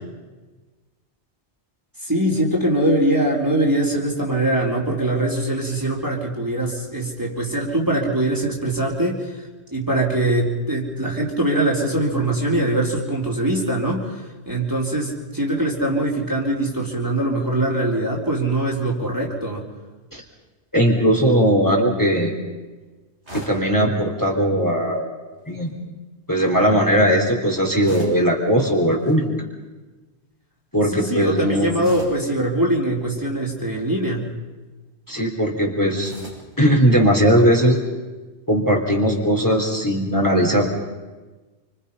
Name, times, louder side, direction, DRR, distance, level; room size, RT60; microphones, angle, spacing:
voice 1, 2.0-9.3 9.7-19.6 30.9-34.3, right 1 dB, 15° right, -2 dB, 4.1 m, -22 dB
voice 2, 20.7-22.3 23.3-25.1 25.5-25.7 26.3-29.4 30.7-31.7 35.1-36.1 36.6-37.8 38.5-40.7, equal, 15° left, -1 dB, 3.9 m, -18 dB
sound 1, 23.2-23.7 25.4-25.7 27.8-28.3 28.9-29.2 31.8-32.3 33.6-34.0 36.0-36.5, equal, 85° right, 7.3 m, -37 dB
28.5 x 26.0 x 5.6 m, 1.2 s
omnidirectional pair, 1.1 m